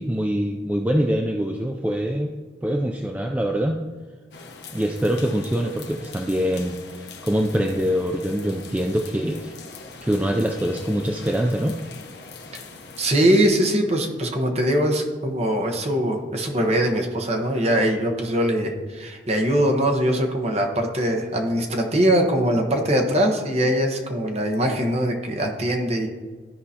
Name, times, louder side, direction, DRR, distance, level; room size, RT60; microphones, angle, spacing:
voice 1, 0.0-2.3 2.6-3.8 4.7-9.5 10.0-11.8, equal, 10° right, 2 dB, 0.3 m, -24 dB
sound 1, 4.3-13.5, left 4 dB, 65° left, 0.9 m, -42 dB
voice 2, 13.0-26.1, equal, 35° right, 3 dB, 1.0 m, -22 dB
13.5 x 4.8 x 2.8 m, 1.4 s
head